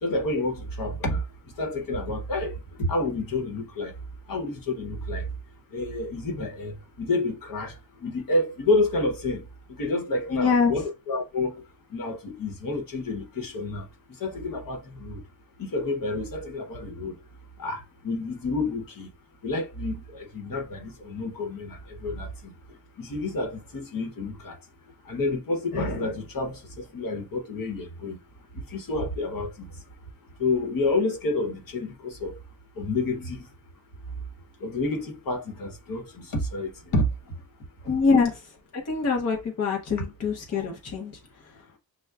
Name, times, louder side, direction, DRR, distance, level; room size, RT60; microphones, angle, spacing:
voice 1, 0.0-1.2 1.6-3.9 4.3-5.3 5.7-7.7 8.0-9.4 9.8-11.5 11.9-13.8 14.2-15.2 15.6-17.2 17.6-17.8 18.0-19.1 19.4-22.5 23.0-24.5 25.1-28.2 28.7-29.7 30.4-32.3 32.8-33.4 34.6-37.1 37.9-38.0 40.5-40.7, left 2 dB, 65° left, 1.1 m, -29 dB
voice 2, 10.3-10.8 37.8-38.4 38.7-41.7, left 4 dB, 45° left, 0.7 m, -25 dB
6.5 x 2.2 x 2.3 m
wide cardioid pair, 135°, 37 cm